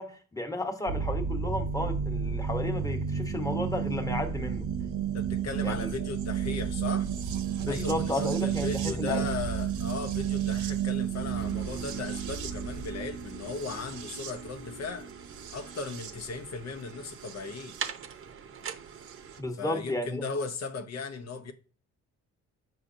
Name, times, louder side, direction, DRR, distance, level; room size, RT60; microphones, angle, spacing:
voice 1, 0.0-4.7 5.6-5.9 7.6-9.3 19.4-20.2, left 1 dB, 10° left, 1.1 m, -33 dB
sound 1, 0.9-17.9 19.1-19.2, right 8 dB, 80° right, 0.9 m, -32 dB
voice 2, 5.1-7.1 7.7-15.1 15.5-17.7 19.6-21.5, left 4 dB, 60° left, 0.8 m, -37 dB
sound 2, 11.3-19.4, right 7 dB, 45° right, 0.7 m, -44 dB
7.5 x 5.6 x 2.6 m
cardioid pair, 90°, 30 cm